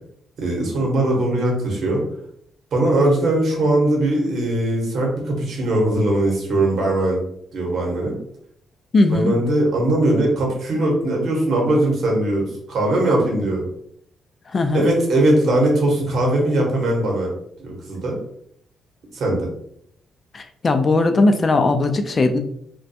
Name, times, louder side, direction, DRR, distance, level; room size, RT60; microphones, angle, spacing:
voice 1, 0.4-2.0 2.7-7.2 7.5-8.2 9.1-13.7 14.7-17.3 17.6-18.2 19.1-19.5, right 1 dB, 60° right, -1 dB, 0.8 m, -20 dB
voice 2, 8.9-9.4 14.5-14.9 20.3-22.4, left 2 dB, 35° left, 7 dB, 0.3 m, -18 dB
2.4 x 2.2 x 2.6 m, 0.69 s
cardioid pair, 115°, 0 cm